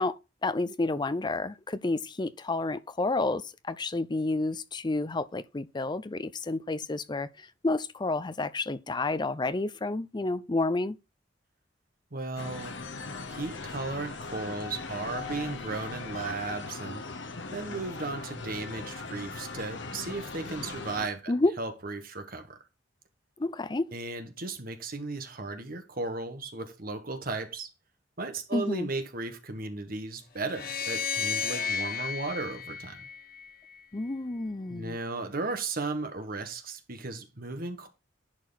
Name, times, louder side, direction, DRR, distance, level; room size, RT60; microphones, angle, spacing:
voice 1, 0.0-11.0 21.3-21.5 23.4-23.9 28.5-28.9 33.9-35.0, left 2 dB, 25° left, 0.5 m, -30 dB
voice 2, 12.1-12.8 13.3-17.0 17.5-21.3 21.6-22.6 23.9-27.7 28.2-33.1 34.7-37.9, right 3 dB, 50° right, 1.4 m, -35 dB
sound 1, 12.4-21.1, left 3 dB, 75° left, 1.0 m, -39 dB
sound 2, 30.4-33.7, left 6 dB, 50° left, 1.3 m, -33 dB
10.5 x 4.6 x 4.0 m
head